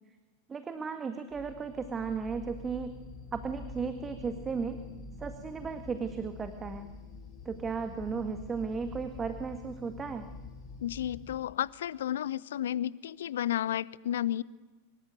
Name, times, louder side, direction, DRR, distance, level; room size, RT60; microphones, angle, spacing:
voice 1, 0.5-2.9 3.3-4.8 5.2-6.9 7.5-10.3, right 5 dB, 20° right, 8 dB, 1.9 m, -35 dB
sound 1, 1.3-11.4, left 2 dB, 25° left, 7.7 m, -46 dB
voice 2, 10.8-14.4, left 11 dB, 60° left, 21 dB, 0.8 m, -32 dB
25.5 x 22.0 x 9.2 m, 1.2 s
figure-of-eight pair, 90°, 0 cm